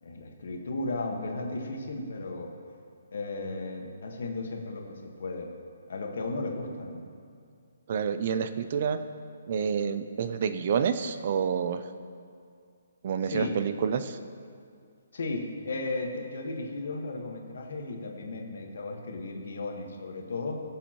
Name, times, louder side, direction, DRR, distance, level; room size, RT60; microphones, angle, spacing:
voice 1, 0.0-2.5 3.1-5.5 5.9-7.0 13.3-13.6 15.1-20.6, left 2 dB, 55° left, 2 dB, 1.3 m, -35 dB
voice 2, 7.9-9.0 9.5-11.8 13.0-14.2, right 7 dB, 30° right, 11 dB, 0.4 m, -28 dB
17.5 x 7.1 x 2.9 m, 2.3 s
hypercardioid pair, 180°, 0 cm